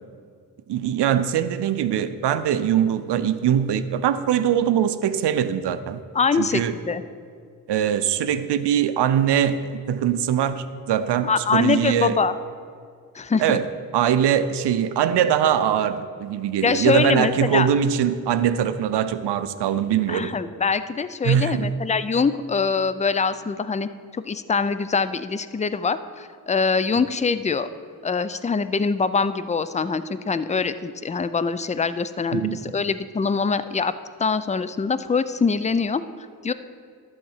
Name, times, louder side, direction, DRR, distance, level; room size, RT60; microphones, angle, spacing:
voice 1, 0.7-6.0 6.4-6.8 7.7-12.2 13.4-13.7 13.9-20.3 21.2-21.7 32.3-32.6, right 9 dB, 90° right, 12 dB, 0.6 m, -22 dB
voice 2, 6.1-7.0 11.2-12.3 13.1-13.6 16.6-17.7 20.1-27.7 28.0-33.9 34.2-36.0 36.4-36.5, left 5 dB, 20° left, 13 dB, 0.4 m, -23 dB
11.5 x 3.9 x 7.3 m, 2.2 s
cardioid pair, 50°, 40 cm